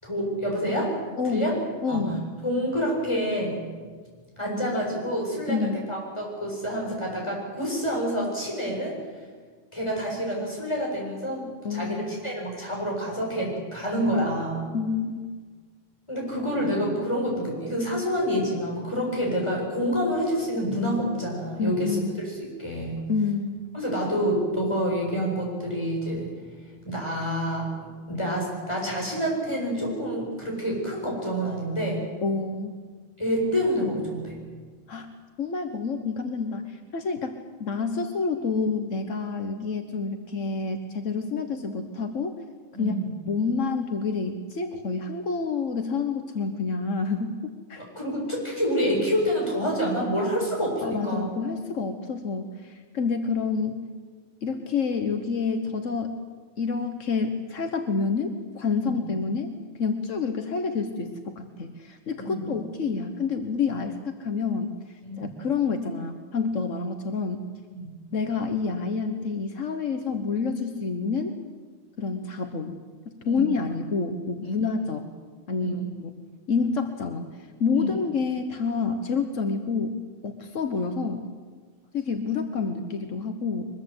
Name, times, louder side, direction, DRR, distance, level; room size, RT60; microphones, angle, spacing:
voice 1, 0.0-0.9 1.2-1.6 1.9-2.1 2.4-3.6 4.4-5.6 5.9-8.9 9.7-14.6 16.1-22.0 22.2-23.0 23.7-26.3 26.8-27.7 28.1-32.0 33.2-34.4 42.7-43.1 47.8-51.3 58.8-58.9 62.2-62.5 65.0-65.1 67.7-67.9 73.2-73.5 75.6-75.7 77.7-77.8, equal, 25° left, -2 dB, 8.1 m, -27 dB
voice 2, 1.2-1.5 1.8-2.3 5.5-5.8 11.6-12.2 14.7-15.3 21.6-22.2 23.1-23.6 32.2-32.8 34.9-35.1 35.4-42.3 42.8-42.9 43.3-47.8 50.8-53.8 54.4-56.2 56.6-59.5 59.8-64.7 65.2-67.5 68.1-71.3 72.0-72.8 73.0-75.0 75.5-76.1 76.5-80.0 80.2-81.2 81.9-83.7, left 4 dB, 80° left, 6 dB, 1.6 m, -28 dB
23.0 x 22.0 x 8.1 m, 1.5 s
omnidirectional pair, 1.3 m